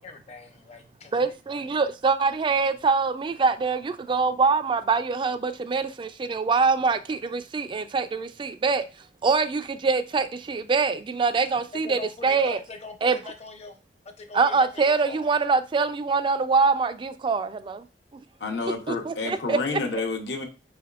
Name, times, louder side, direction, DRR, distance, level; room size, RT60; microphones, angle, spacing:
voice 1, 0.0-1.6 11.5-13.8 14.0-15.3, left 3 dB, 40° left, 0.7 m, -42 dB
voice 2, 1.1-8.8 9.2-12.6 13.0-13.2 14.3-17.8 18.9-19.8, right 4 dB, 30° right, 0.3 m, -24 dB
voice 3, 18.4-20.4, left 4 dB, 80° left, 0.8 m, -29 dB
5.3 x 3.4 x 2.4 m
head